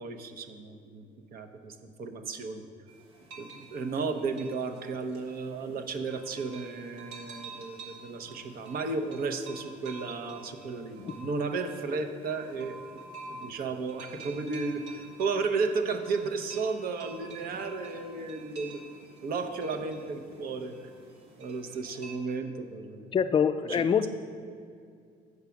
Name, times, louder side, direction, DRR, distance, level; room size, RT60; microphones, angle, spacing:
voice 1, 0.0-2.7 3.4-12.7 13.3-18.8 19.2-20.7 21.4-23.1 23.6-23.8, right 4 dB, 60° right, 6 dB, 0.8 m, -34 dB
sound 1, 2.9-22.1, right 3 dB, 85° right, 1.6 m, -49 dB
voice 2, 23.1-24.1, left 7 dB, 30° left, 11 dB, 0.4 m, -25 dB
8.1 x 4.8 x 7.0 m, 2.2 s
cardioid pair, 110°, 17 cm